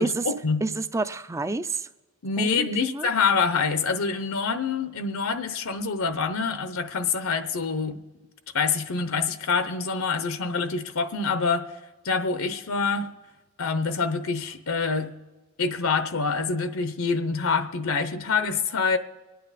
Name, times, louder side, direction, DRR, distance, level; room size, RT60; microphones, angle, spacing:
voice 1, 0.0-0.6 2.2-8.0 8.5-11.6 12.0-13.1 13.6-15.1 15.6-19.0, left 5 dB, 70° left, 10 dB, 0.7 m, -26 dB
voice 2, 0.6-1.9 2.4-3.1, right 3 dB, 15° right, 12 dB, 0.4 m, -29 dB
25.0 x 9.4 x 4.1 m, 1.2 s
head